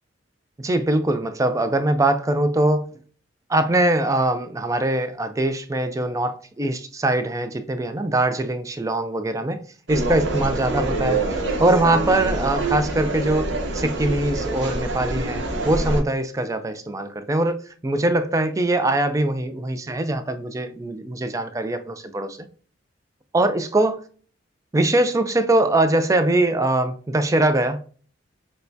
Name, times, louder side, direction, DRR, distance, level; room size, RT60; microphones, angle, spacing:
voice 1, 0.6-2.9 3.5-9.6 9.9-17.6 17.8-22.4 23.3-24.0 24.7-28.0, right 2 dB, 15° right, 0.4 m, -22 dB
sound 1, 9.9-16.0, right 2 dB, 70° right, 0.9 m, -26 dB
6.4 x 2.2 x 2.7 m
head